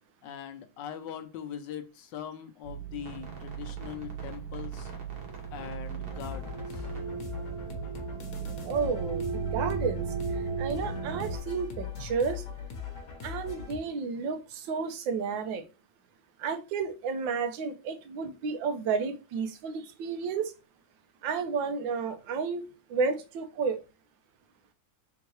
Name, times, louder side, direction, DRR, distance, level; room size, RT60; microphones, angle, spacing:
voice 1, 0.2-4.9 5.5-6.8, left 9 dB, 75° left, 1.2 m, -41 dB
sound 1, 2.6-11.4, right 6 dB, 55° right, 1.5 m, -36 dB
sound 2, 6.1-13.8, left 6 dB, 50° left, 1.1 m, -40 dB
voice 2, 8.6-10.0 10.3-12.4 13.2-15.6 16.4-20.5 21.2-22.6 22.9-23.8, right 5 dB, 75° right, 1.4 m, -31 dB
3.8 x 3.6 x 3.0 m
omnidirectional pair, 2.2 m